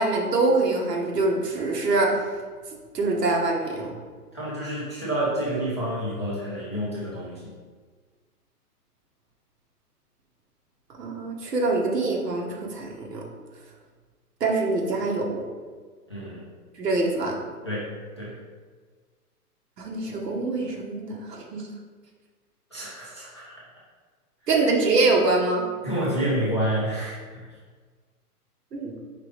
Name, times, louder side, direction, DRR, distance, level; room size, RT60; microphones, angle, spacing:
voice 1, 0.0-2.3 2.9-3.9 11.0-13.2 14.4-15.4 16.8-17.4 19.8-21.7 24.5-25.6 28.7-28.9, right 3 dB, 85° right, 0 dB, 1.2 m, -24 dB
voice 2, 4.3-7.5 16.1-16.4 17.7-17.9 18.2-18.3 22.7-23.5 25.8-27.4, right 1 dB, 20° left, -8 dB, 0.3 m, -28 dB
4.8 x 3.1 x 3.1 m, 1.5 s
hypercardioid pair, 140°, 47 cm